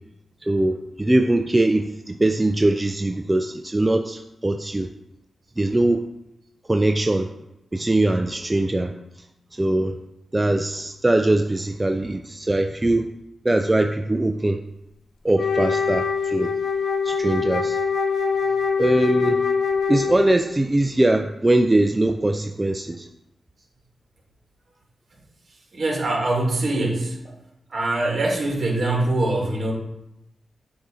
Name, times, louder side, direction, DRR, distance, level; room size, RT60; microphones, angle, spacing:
voice 1, 0.4-4.9 5.6-6.0 6.7-7.3 7.7-8.9 9.5-10.0 10.3-13.1 13.4-14.6 15.2-16.5 17.0-17.8 18.8-19.4 19.9-23.1, right 1 dB, 20° right, 5 dB, 0.4 m, -21 dB
Wind instrument woodwind instrument, 15.3-20.5, left 5 dB, 75° left, 0.6 m, -23 dB
voice 2, 25.7-27.3 27.7-29.7, right 2 dB, 55° right, 0 dB, 1.7 m, -23 dB
7.9 x 2.7 x 4.8 m, 0.86 s
cardioid pair, 65°, 0 cm